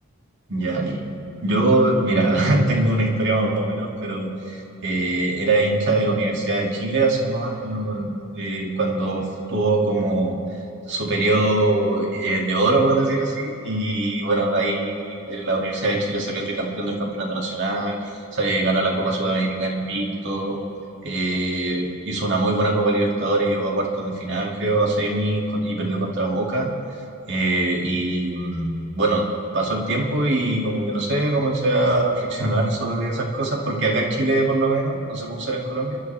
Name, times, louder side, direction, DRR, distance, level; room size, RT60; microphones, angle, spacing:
voice 1, 0.5-1.0 1.4-10.4 10.9-20.6 21.0-26.7 27.3-29.3 29.5-36.0, right 2 dB, 55° right, -1 dB, 2.5 m, -23 dB
29.5 x 12.0 x 3.5 m, 2.8 s
head